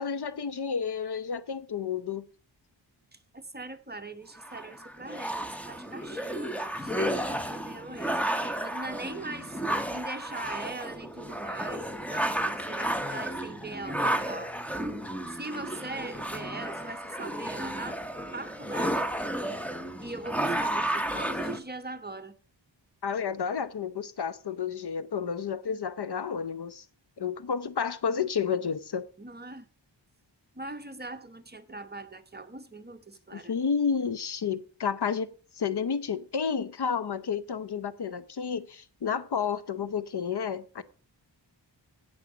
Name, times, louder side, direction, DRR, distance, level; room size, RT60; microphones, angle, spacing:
voice 1, 0.0-2.3 23.0-26.8 27.2-29.1 33.3-40.8, left 6 dB, 60° left, 0.8 m, -31 dB
voice 2, 3.1-9.6 9.9-14.5 15.3-18.0 18.3-19.0 20.0-22.3 29.2-29.7 30.6-33.5, right 2 dB, 20° right, 1.0 m, -41 dB
sound 1, 4.4-21.6, right 1 dB, 5° left, 1.0 m, -32 dB
16.5 x 6.4 x 4.9 m
wide cardioid pair, 100°, 45 cm